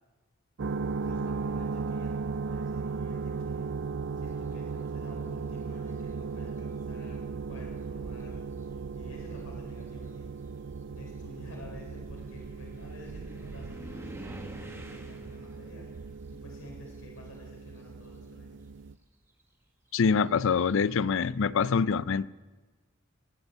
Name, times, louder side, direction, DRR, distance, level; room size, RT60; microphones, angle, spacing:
sound 1, 0.6-18.9, right 4 dB, 60° right, 0.4 m, -37 dB
voice 1, 0.9-3.7 4.2-8.5 8.9-10.3 10.9-15.9 16.3-18.5, left 1 dB, 85° left, 4.3 m, -50 dB
sound 2, 5.6-6.1 7.1-7.2 7.8-17.7 18.0-20.6, right 1 dB, 15° right, 1.5 m, -50 dB
voice 2, 19.9-22.3, left 5 dB, 65° left, 0.5 m, -25 dB
20.5 x 8.1 x 8.1 m
head